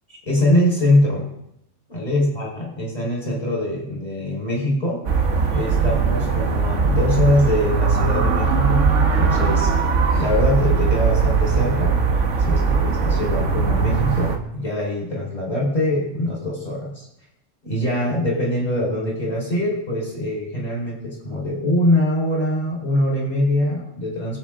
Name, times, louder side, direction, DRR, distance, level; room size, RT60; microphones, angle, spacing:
voice 1, 0.3-1.3 1.9-5.0 5.5-8.9 9.1-9.7 10.2-12.0 12.4-17.1 17.6-24.4, left 1 dB, 35° left, -3 dB, 5.1 m, -23 dB
sound 1, 5.1-14.4, right 5 dB, 70° right, 1.6 m, -19 dB
23.5 x 8.3 x 3.8 m, 0.78 s
omnidirectional pair, 1.3 m